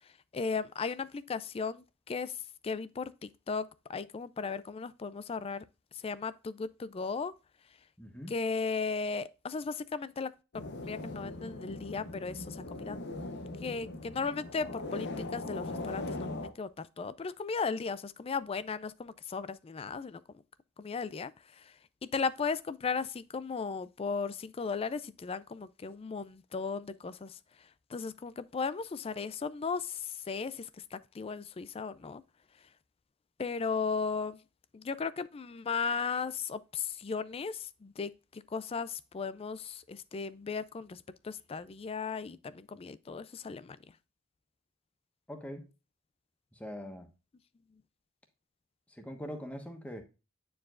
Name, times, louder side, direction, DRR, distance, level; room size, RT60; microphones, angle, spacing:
voice 1, 0.3-5.6 6.0-7.3 8.3-13.0 13.6-20.2 20.8-21.7 22.0-32.2 33.4-34.4 34.7-43.8, left 5 dB, 25° left, 0.3 m, -36 dB
voice 2, 8.0-8.3 45.3-45.7 46.5-47.1 48.9-50.0, equal, 5° left, 1.1 m, -42 dB
sound 1, 10.5-16.5, left 2 dB, 55° left, 0.8 m, -40 dB
9.6 x 4.7 x 2.4 m
head